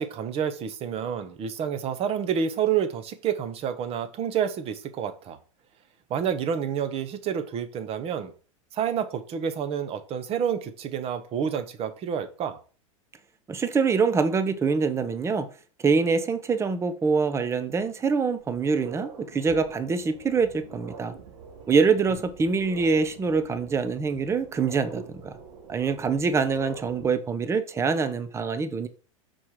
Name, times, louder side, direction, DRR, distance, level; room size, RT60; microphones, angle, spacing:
voice 1, 0.0-5.4 6.1-8.3 8.7-12.6, right 8 dB, 35° right, 9 dB, 1.0 m, -29 dB
voice 2, 13.5-15.5 15.8-21.1 21.7-25.3 25.7-28.9, right 5 dB, 15° right, 11 dB, 0.7 m, -25 dB
sound 1, 18.3-27.1, right 5 dB, 85° right, 1.7 m, -45 dB
5.8 x 4.5 x 4.8 m, 0.39 s
supercardioid pair, 125°, 17 cm